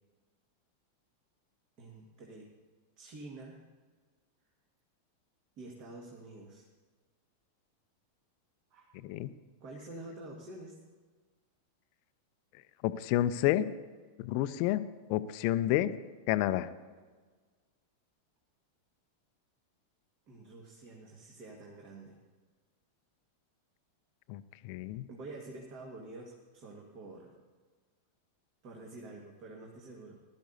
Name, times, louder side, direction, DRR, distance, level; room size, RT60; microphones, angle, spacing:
voice 1, 1.8-2.5 3.0-3.6 5.6-6.7 8.7-8.9 9.6-10.8 20.3-22.2 25.1-27.3 28.6-30.2, right 2 dB, 40° right, 0 dB, 1.8 m, -48 dB
voice 2, 12.8-13.7 14.2-14.8 15.1-15.9 16.3-16.7 24.3-25.1, left 14 dB, 45° left, 14 dB, 0.5 m, -29 dB
19.5 x 12.0 x 2.7 m, 1.4 s
figure-of-eight pair, 90°, 0 cm